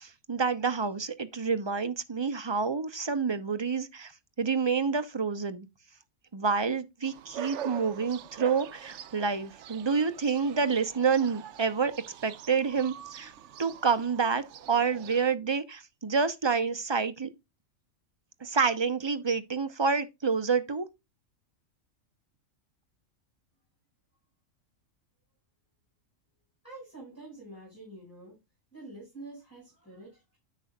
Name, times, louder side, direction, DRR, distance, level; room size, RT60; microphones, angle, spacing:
voice 1, 0.0-4.1 4.4-5.7 6.3-11.9 12.2-13.3 13.6-17.3 18.4-20.9, right 5 dB, 25° right, 0.8 m, -28 dB
sound 1, 7.0-15.3, right 10 dB, 65° right, 0.9 m, -44 dB
voice 2, 26.6-28.4 28.7-30.4, right 2 dB, 10° left, 5.6 m, -47 dB
10.5 x 6.9 x 2.3 m
omnidirectional pair, 1.4 m